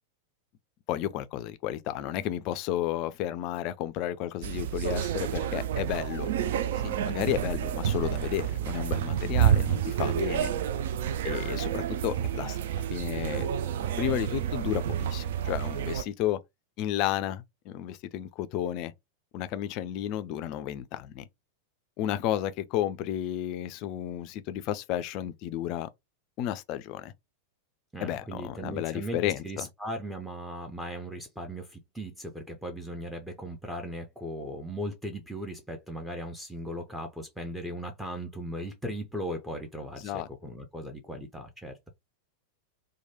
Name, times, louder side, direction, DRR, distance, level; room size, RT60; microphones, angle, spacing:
voice 1, 0.9-6.3 6.8-10.5 11.2-12.6 12.9-13.5 14.0-16.4 16.8-18.9 19.3-21.3 22.0-25.9 26.4-27.1 28.0-29.7 40.0-40.3, left 12 dB, 40° left, 0.3 m, -32 dB
sound 1, 4.4-16.0, right 10 dB, 55° right, 0.3 m, -29 dB
voice 2, 27.9-41.9, equal, 5° right, 0.6 m, -38 dB
2.9 x 2.2 x 2.9 m
figure-of-eight pair, 90°, 0 cm